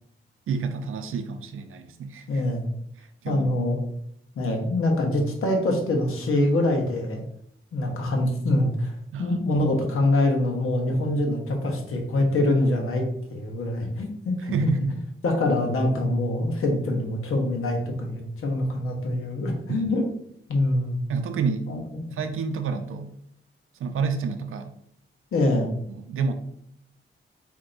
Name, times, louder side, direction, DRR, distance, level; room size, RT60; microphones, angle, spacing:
voice 1, 0.5-2.4 3.0-3.5 9.1-9.4 14.4-14.9 19.7-20.0 21.1-21.7 22.1-23.1 23.8-24.7 25.9-26.3, right 5 dB, 75° right, 7 dB, 0.5 m, -29 dB
voice 2, 2.3-2.6 3.3-3.8 4.3-7.2 7.7-8.9 9.2-14.7 15.2-20.1 20.5-21.0 21.7-21.8 25.3-25.7, left 1 dB, 85° left, 2 dB, 1.0 m, -24 dB
4.4 x 2.8 x 3.8 m, 0.70 s
wide cardioid pair, 150°, 21 cm